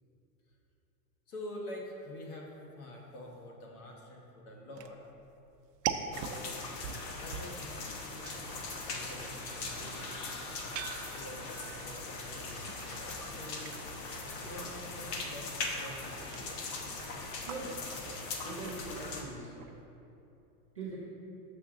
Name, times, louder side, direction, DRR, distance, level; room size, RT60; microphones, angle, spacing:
voice 1, 1.3-5.0 6.1-6.6 7.1-8.6 8.9-10.3 11.1-13.8 14.3-16.9, left 1 dB, 60° left, -1 dB, 1.4 m, -47 dB
sound 1, 4.7-19.8, right 8 dB, 70° right, 0.6 m, -45 dB
sound 2, 6.1-19.2, left 3 dB, 75° left, 1.2 m, -40 dB
sound 3, 8.9-11.5, left 2 dB, 35° left, 0.9 m, -50 dB
voice 2, 17.4-17.8 18.4-19.6 20.7-21.0, right 3 dB, 25° right, -11 dB, 0.4 m, -41 dB
6.8 x 6.3 x 3.8 m, 2.8 s
supercardioid pair, 180°, 50 cm